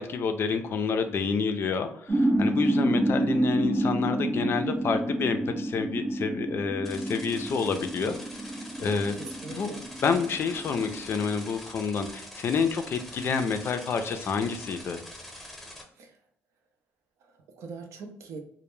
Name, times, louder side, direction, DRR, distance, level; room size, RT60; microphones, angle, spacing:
voice 1, 0.0-8.2 8.8-9.2 9.5-15.0, left 5 dB, 50° left, 8 dB, 0.4 m, -28 dB
sound 1, 2.1-11.3, right 1 dB, 30° right, 0.5 m, -28 dB
sound 2, 6.8-15.8, left 1 dB, ahead, 0.8 m, -44 dB
voice 2, 9.1-9.8 16.0-16.2 17.2-18.4, right 4 dB, 75° right, 4 dB, 0.5 m, -42 dB
2.1 x 2.1 x 3.0 m, 0.67 s
cardioid pair, 100°, 5 cm